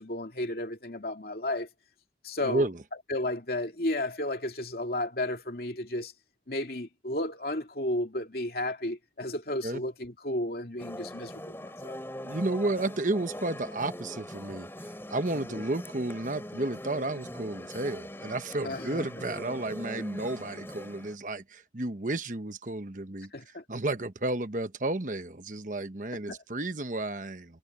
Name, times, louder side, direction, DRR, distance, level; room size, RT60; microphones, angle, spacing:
voice 1, 0.0-1.7 2.2-2.7 3.1-6.1 6.5-12.0 15.5-15.6 18.6-18.8 23.3-23.6 26.3-26.4, left 1 dB, 55° left, 2.7 m, -33 dB
voice 2, 2.4-2.8 9.6-9.8 12.2-23.3 23.7-27.6, right 2 dB, 45° right, 1.1 m, -32 dB
sound 1, 10.8-21.2, left 1 dB, 15° left, 4.9 m, -42 dB
head